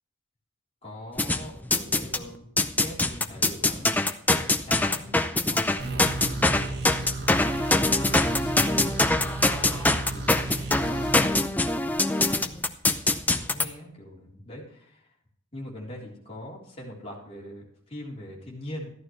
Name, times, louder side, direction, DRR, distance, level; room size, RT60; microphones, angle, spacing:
voice 1, 0.8-7.1 7.6-10.4 10.8-12.7 13.5-15.0 15.5-17.6 17.9-18.9, left 1 dB, 30° left, -3 dB, 3.6 m, -42 dB
sound 1, 1.2-2.2 2.6-13.7, left 2 dB, 10° left, 0.5 m, -23 dB
sound 2, 5.8-11.4, right 2 dB, 50° right, 1.6 m, -34 dB
14.0 x 11.5 x 3.2 m, 0.68 s
head